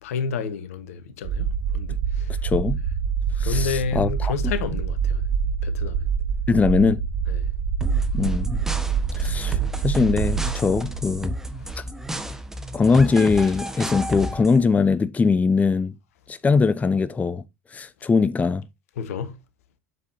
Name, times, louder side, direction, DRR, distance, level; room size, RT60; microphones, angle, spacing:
voice 1, 0.0-1.5 1.7-2.4 3.4-5.2 5.6-6.0 7.3-7.4 11.6-11.7 19.0-19.4, left 6 dB, 70° left, 1.4 m, -30 dB
sound 1, 1.2-12.8, right 6 dB, 75° right, 1.9 m, -26 dB
voice 2, 2.4-2.8 3.4-4.3 6.5-7.0 8.1-8.6 9.2-11.3 11.8-11.9 12.7-15.9 16.3-17.4 17.7-18.6, left 4 dB, 20° left, 0.6 m, -21 dB
sound 2, 7.8-14.6, equal, 5° right, 1.4 m, -32 dB
8.4 x 7.4 x 2.8 m
hypercardioid pair, 75°, 8 cm